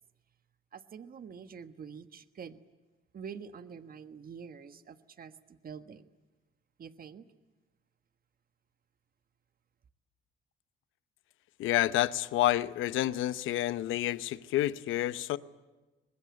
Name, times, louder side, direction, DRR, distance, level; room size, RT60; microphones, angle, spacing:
voice 1, 0.7-2.6 3.1-6.1 6.8-7.3, right 6 dB, 45° right, 1.4 m, -46 dB
voice 2, 11.6-15.4, left 14 dB, 85° left, 0.9 m, -29 dB
24.5 x 20.5 x 9.5 m
cardioid pair, 90°, 20 cm